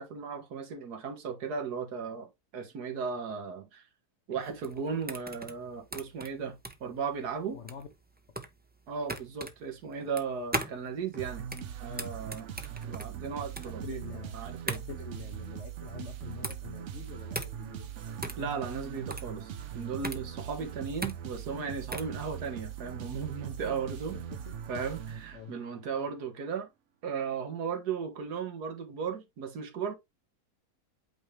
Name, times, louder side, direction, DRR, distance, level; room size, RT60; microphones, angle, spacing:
voice 1, 0.0-2.3 2.5-3.9 4.3-7.6 8.9-11.5 11.8-12.5 12.8-14.0 14.3-14.8 18.4-24.2 24.7-26.7 27.0-29.9, right 6 dB, 75° right, 1.9 m, -36 dB
sound 1, 4.4-22.2, right 1 dB, 10° right, 0.6 m, -40 dB
voice 2, 7.5-7.9 13.6-14.4 14.7-17.9 22.2-22.3 24.3-24.7 25.3-25.6, left 6 dB, 50° left, 1.1 m, -46 dB
sound 2, 11.2-25.8, right 9 dB, 60° right, 0.9 m, -41 dB
8.7 x 3.4 x 3.2 m
omnidirectional pair, 1.7 m